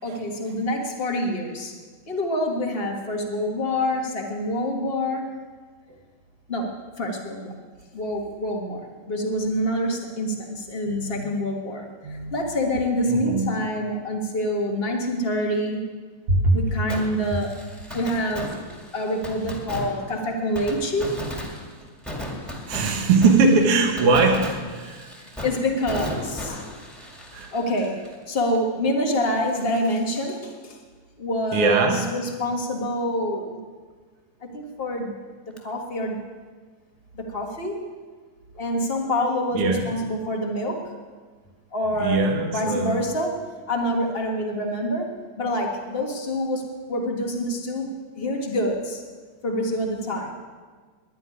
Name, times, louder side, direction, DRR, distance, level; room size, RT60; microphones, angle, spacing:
voice 1, 0.0-1.7 2.1-5.3 6.5-6.7 7.0-7.5 7.9-15.8 16.5-17.5 17.9-18.5 18.9-21.2 25.2-26.7 27.5-28.0 28.3-30.8 31.2-33.6 34.4-35.1 35.6-36.2 37.1-37.9 38.5-40.9 41.7-49.0 49.4-50.3, left 1 dB, 40° left, 1 dB, 0.8 m, -26 dB
voice 2, 10.9-11.2 12.0-12.3 13.1-13.5 16.3-16.6 22.7-25.1 27.3-27.5 31.5-32.0 39.5-39.9 42.0-43.0, right 3 dB, 55° right, 1 dB, 2.0 m, -21 dB
Fireworks, 16.9-28.6 28.8-28.9 35.6-35.7, left 1 dB, ahead, 1.5 m, -36 dB
11.0 x 9.7 x 9.8 m, 1.5 s
omnidirectional pair, 3.6 m